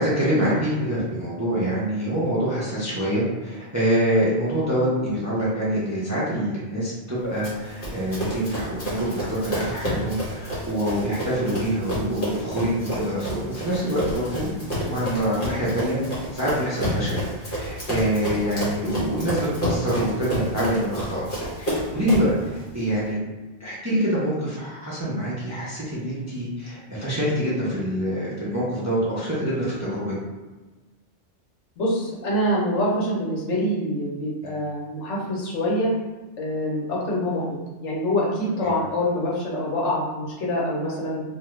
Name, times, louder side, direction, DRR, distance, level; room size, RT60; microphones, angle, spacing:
voice 1, 0.0-14.5 14.9-16.0 16.3-21.3 21.6-23.2 23.6-30.1 34.4-34.5, equal, 20° right, -8 dB, 0.5 m, -25 dB
Run, 7.4-22.4, equal, 45° left, 1.2 m, -30 dB
voice 2, 31.8-35.9 36.4-37.4 37.8-41.2, equal, 75° left, -4 dB, 1.1 m, -25 dB
2.6 x 2.3 x 3.1 m, 1.2 s
omnidirectional pair, 1.2 m